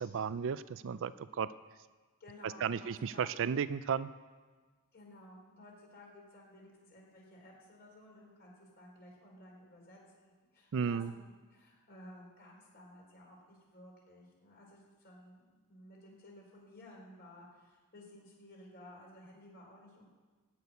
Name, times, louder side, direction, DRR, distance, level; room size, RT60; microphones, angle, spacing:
voice 1, 0.0-1.5 2.4-4.1 10.7-11.1, right 7 dB, 60° right, 15 dB, 0.4 m, -34 dB
voice 2, 2.2-3.3 4.9-20.1, left 1 dB, 45° left, -2 dB, 4.5 m, -55 dB
15.0 x 6.2 x 9.5 m, 1.4 s
head